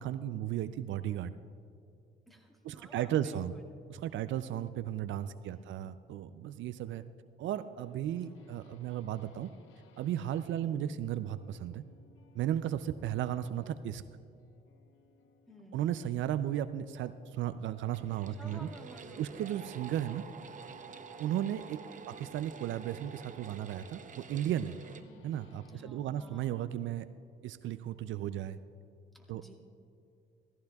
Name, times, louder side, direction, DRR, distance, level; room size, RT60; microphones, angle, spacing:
voice 1, 0.0-1.3 2.6-3.5 3.9-7.0 7.4-9.5 10.0-11.8 12.3-14.0 15.7-18.7 19.2-20.2 21.2-24.8 25.2-27.1 27.4-28.6 29.3-29.4, right 11 dB, 75° right, 13 dB, 0.4 m, -35 dB
voice 2, 2.3-3.7 5.5-5.8 10.6-10.8 15.5-15.8 18.3-19.6 22.0-22.3 24.9-25.1 25.7-26.6 29.1-29.5, equal, ahead, 0 dB, 2.1 m, -54 dB
Tele Bridge Arpeggio Theme, 7.6-25.8, left 5 dB, 80° left, 0.9 m, -64 dB
sound 1, 17.9-25.0, right 6 dB, 40° right, 0.7 m, -49 dB
17.0 x 14.5 x 2.3 m, 2.6 s
cardioid pair, 90°, 20 cm